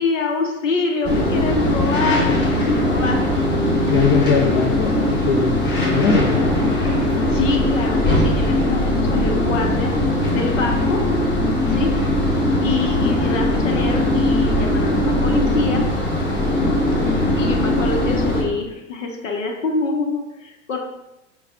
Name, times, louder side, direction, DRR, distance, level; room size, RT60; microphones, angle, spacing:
voice 1, 0.0-3.2 7.3-9.9 10.3-11.1 11.7-11.9 12.6-15.9 17.0-20.8, left 4 dB, 75° left, 2 dB, 1.2 m, -25 dB
sound 1, 1.0-18.4, left 1 dB, 25° left, 1.3 m, -19 dB
voice 2, 3.9-6.4, left 6 dB, 40° left, 3 dB, 0.6 m, -20 dB
5.8 x 2.4 x 3.8 m, 0.91 s
hypercardioid pair, 105°, 38 cm